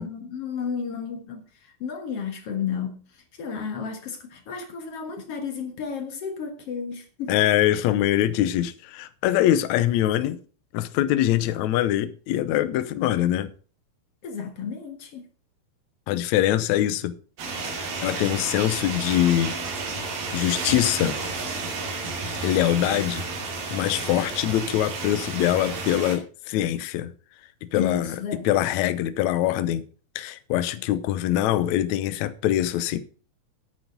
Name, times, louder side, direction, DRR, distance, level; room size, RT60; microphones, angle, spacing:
voice 1, 0.0-3.0 3.3-7.4 14.2-15.3 27.7-28.5, left 6 dB, 55° left, 1.9 m, -32 dB
voice 2, 7.3-10.4 10.7-13.5 16.1-17.1 17.7-19.6 20.3-21.2 22.4-23.2 23.5-27.1 27.6-29.8 30.1-33.0, left 13 dB, 75° left, 1.7 m, -23 dB
sound 1, 17.4-26.2, right 3 dB, 80° right, 4.4 m, -31 dB
9.5 x 9.5 x 5.2 m
omnidirectional pair, 4.2 m